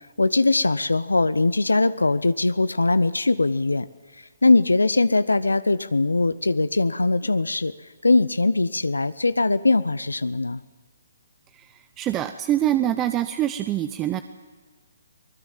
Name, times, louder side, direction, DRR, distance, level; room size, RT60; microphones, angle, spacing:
voice 1, 0.2-3.9 4.4-7.7 8.0-10.6, left 3 dB, 85° left, 15 dB, 0.7 m, -21 dB
voice 2, 11.5-14.2, right 12 dB, 20° right, 11 dB, 0.7 m, -25 dB
24.0 x 20.0 x 7.4 m, 1.4 s
figure-of-eight pair, 140°, 0 cm